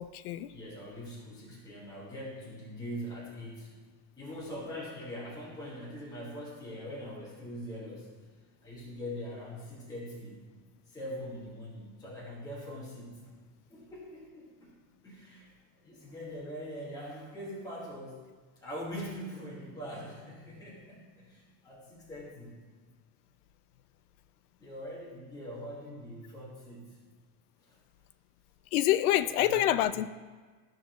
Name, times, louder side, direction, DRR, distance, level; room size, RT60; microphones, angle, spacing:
voice 1, 0.0-0.5 28.7-30.1, left 13 dB, 85° left, 13 dB, 0.6 m, -27 dB
voice 2, 0.5-3.8 4.2-8.1 8.6-10.5 10.9-13.3 13.7-14.7 15.0-15.5 15.8-18.2 18.6-22.6 24.6-27.0 27.6-27.8 29.4-29.7, equal, 10° left, -6 dB, 1.6 m, -42 dB
13.5 x 6.1 x 3.1 m, 1.4 s
cardioid pair, 175°, 43 cm